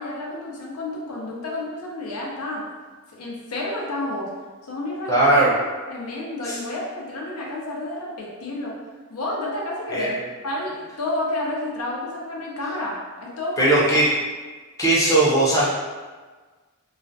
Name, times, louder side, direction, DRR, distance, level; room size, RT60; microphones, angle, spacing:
voice 1, 0.0-2.6 3.1-4.3 4.7-8.8 9.1-13.8, left 1 dB, 85° left, -3 dB, 0.6 m, -30 dB
voice 2, 5.1-5.5 6.5-6.6 9.9-10.1 13.6-14.1 14.8-15.7, right 2 dB, 15° left, -7 dB, 0.5 m, -18 dB
2.3 x 2.1 x 2.6 m, 1.4 s
head